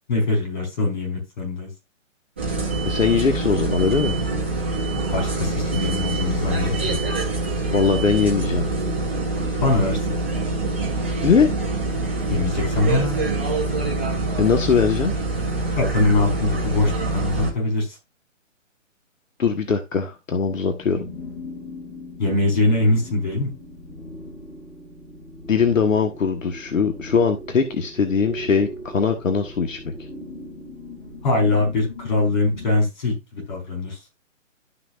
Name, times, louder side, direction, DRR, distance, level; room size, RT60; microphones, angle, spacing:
voice 1, 0.1-1.7 5.1-7.0 9.6-10.2 12.3-13.2 15.7-18.0 22.2-23.5 31.2-34.0, left 2 dB, 35° left, 2 dB, 5.1 m, -22 dB
sound 1, 2.4-17.5, right 3 dB, 10° right, 0.6 m, -25 dB
voice 2, 2.8-4.2 7.7-8.6 11.2-11.5 14.4-15.1 19.4-21.0 25.5-29.8, left 5 dB, 80° left, 6 dB, 1.5 m, -20 dB
sound 2, 20.7-32.7, left 1 dB, 15° left, 2.9 m, -39 dB
12.0 x 6.0 x 2.5 m, 0.23 s
hypercardioid pair, 160°, 39 cm